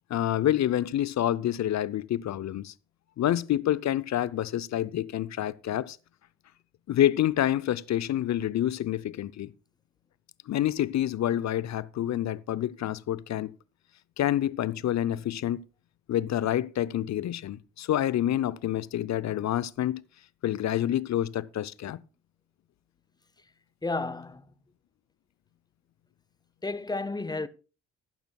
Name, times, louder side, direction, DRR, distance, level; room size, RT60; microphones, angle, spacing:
voice 1, 0.1-2.7 3.2-6.0 6.9-9.5 10.5-13.5 14.2-15.6 16.1-20.0 20.4-22.0, left 12 dB, 45° left, 0.7 m, -28 dB
voice 2, 23.8-24.4 26.6-27.5, left 3 dB, 10° left, 0.8 m, -31 dB
15.0 x 12.0 x 2.3 m
hypercardioid pair, 50°, 39 cm